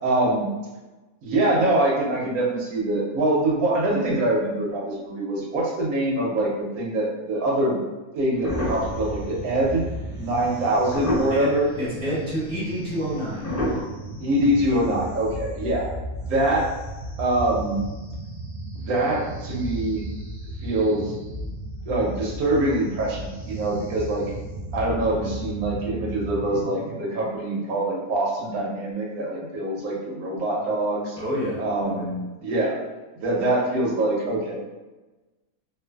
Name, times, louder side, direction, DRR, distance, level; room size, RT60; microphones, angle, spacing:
voice 1, 0.0-0.5 1.2-7.8 8.2-9.9 10.2-11.7 14.2-15.9 16.2-16.7 17.2-17.8 18.7-20.0 20.6-21.1 21.9-24.2 24.7-31.2 31.6-32.8 33.2-34.6, right 1 dB, 75° right, -3 dB, 1.1 m, -24 dB
sound 1, 8.4-9.7 10.5-10.6 10.9-11.6 12.3-12.4 13.4-13.8, left 1 dB, 35° left, 0.8 m, -27 dB
sound 2, 8.5-27.0, right 1 dB, 50° right, 0.7 m, -35 dB
voice 2, 11.3-13.5 31.2-32.1, equal, 5° left, -10 dB, 0.8 m, -29 dB
2.5 x 2.5 x 2.2 m, 1.1 s
omnidirectional pair, 1.6 m